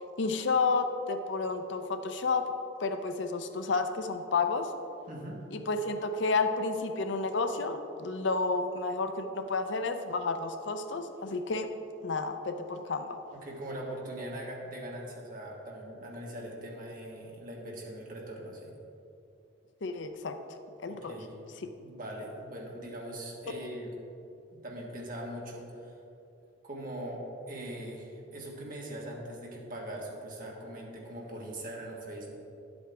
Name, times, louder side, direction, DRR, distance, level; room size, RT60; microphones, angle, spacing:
voice 1, 0.2-2.5 2.8-4.7 5.5-11.7 12.0-13.2 19.8-20.4 20.8-21.1, left 4 dB, 65° left, 8 dB, 0.5 m, -31 dB
voice 2, 5.1-5.5 13.3-18.7 20.9-21.3 21.8-24.0 24.5-25.9 26.6-32.4, right 1 dB, 45° right, -2 dB, 1.5 m, -41 dB
11.0 x 7.9 x 3.4 m, 2.8 s
head